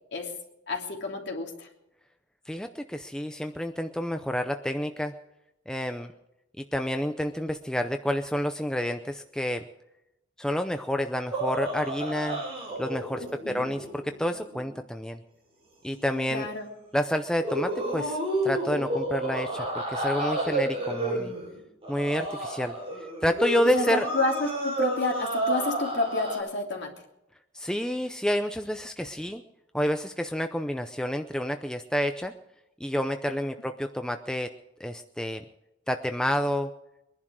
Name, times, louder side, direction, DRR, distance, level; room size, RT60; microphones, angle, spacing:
voice 1, 0.7-1.7 13.4-13.7 16.3-16.7 23.6-26.9, left 2 dB, 60° left, 1 dB, 3.2 m, -30 dB
voice 2, 2.5-5.1 5.7-6.1 6.7-9.6 10.4-12.4 12.8-15.2 15.8-16.5 16.9-18.2 18.4-21.3 21.9-22.8 23.2-24.1 27.5-29.4 29.7-32.3 32.8-34.5 34.8-35.4 35.9-36.7, equal, 5° left, 7 dB, 0.6 m, -29 dB
sound 1, 11.3-14.8 15.9-16.3 17.4-26.4, right 1 dB, 30° right, 7.5 m, -31 dB
22.5 x 11.0 x 4.8 m, 0.87 s
head